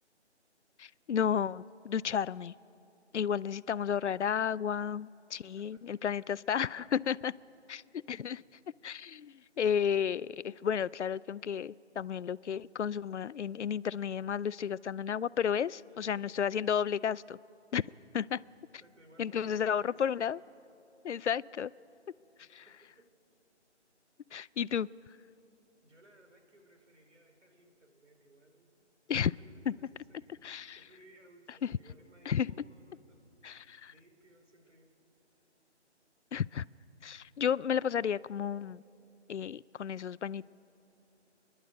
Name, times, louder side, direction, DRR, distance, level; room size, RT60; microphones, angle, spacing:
voice 1, 0.8-2.5 3.1-7.3 7.7-7.8 8.1-8.4 8.8-17.4 17.7-17.8 18.1-18.4 19.2-20.4 21.0-21.7 22.5-22.7 24.3-24.9 29.1-29.3 29.7-29.8 30.4-30.8 32.3-32.5 33.4-33.9 36.3-36.6 37.0-38.8 39.3-40.5, left 8 dB, 75° left, 21 dB, 0.5 m, -32 dB
voice 2, 5.3-6.3 15.9-16.2 18.8-20.5 22.4-23.1 25.8-28.9 29.3-30.4 30.7-33.6 33.9-34.9, right 1 dB, 85° right, 4 dB, 4.2 m, -61 dB
27.0 x 11.0 x 9.3 m, 2.8 s
figure-of-eight pair, 165°, 35 cm